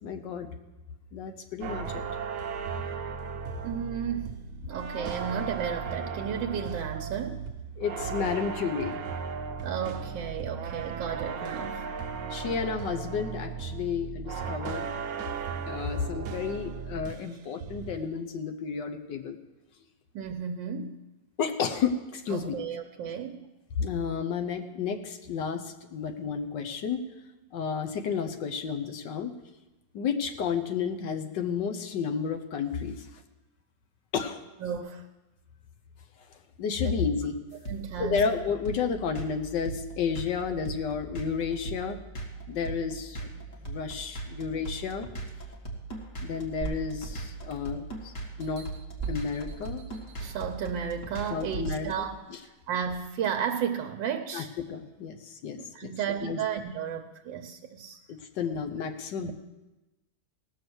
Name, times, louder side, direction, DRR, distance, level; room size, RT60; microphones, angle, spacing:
voice 1, 0.0-0.5 1.1-2.0 7.8-9.0 12.3-14.9 15.7-19.4 21.4-22.6 23.8-27.0 27.5-29.3 29.9-33.2 34.1-34.4 36.6-37.4 38.0-42.0 42.5-45.1 46.2-48.1 48.4-48.7 49.1-49.8 51.3-52.4 54.3-55.9 56.2-56.4 58.1-59.3, left 6 dB, 75° left, 6 dB, 1.5 m, -32 dB
sound 1, 1.6-17.3 17.6-18.0, right 6 dB, 60° right, 1.0 m, -36 dB
voice 2, 3.6-7.5 9.6-11.9 20.1-20.9 22.3-23.5 34.6-35.1 36.8-36.9 37.6-38.2 50.2-52.2 52.4-54.5 55.5-58.0 59.2-59.3, right 8 dB, 90° right, 5 dB, 1.4 m, -33 dB
sound 2, 37.6-51.9, right 3 dB, 45° left, 2.0 m, -38 dB
sound 3, 46.6-47.9 48.4-50.5 51.1-51.2, right 6 dB, 25° right, 0.8 m, -39 dB
17.5 x 6.6 x 6.1 m, 1.1 s
omnidirectional pair, 1.9 m